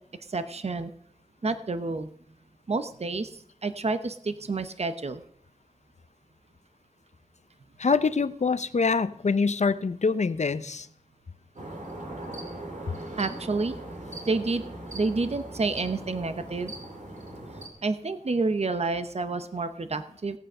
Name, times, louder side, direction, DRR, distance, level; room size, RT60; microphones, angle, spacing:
voice 1, 0.3-0.9 1.4-2.1 2.7-5.2 13.2-13.8 14.3-14.6 14.9-16.7 17.8-20.4, right 3 dB, 55° right, 10 dB, 0.8 m, -29 dB
voice 2, 7.8-10.9, left 4 dB, 65° left, 14 dB, 0.7 m, -25 dB
sound 1, 11.6-17.7, right 1 dB, 75° right, 2.6 m, -40 dB
17.5 x 9.1 x 5.5 m, 0.66 s
wide cardioid pair, 65°, 13 cm